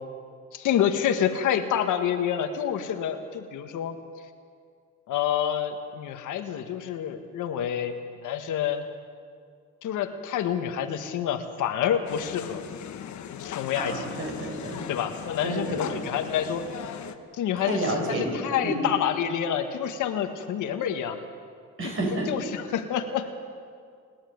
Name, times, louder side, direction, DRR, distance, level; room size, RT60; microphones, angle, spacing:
voice 1, 0.5-4.0 5.1-8.9 9.8-12.6 13.4-14.0 14.9-16.6 17.3-21.2 22.3-23.3, left 9 dB, 85° left, 6 dB, 1.7 m, -28 dB
sound 1, 12.1-17.2, left 9 dB, 70° left, 1.4 m, -38 dB
voice 2, 13.7-14.9 15.4-16.1 17.6-18.8 21.8-22.3, right 2 dB, 45° right, 0 dB, 7.8 m, -30 dB
29.0 x 11.0 x 9.5 m, 2.2 s
cardioid pair, 90°, 30 cm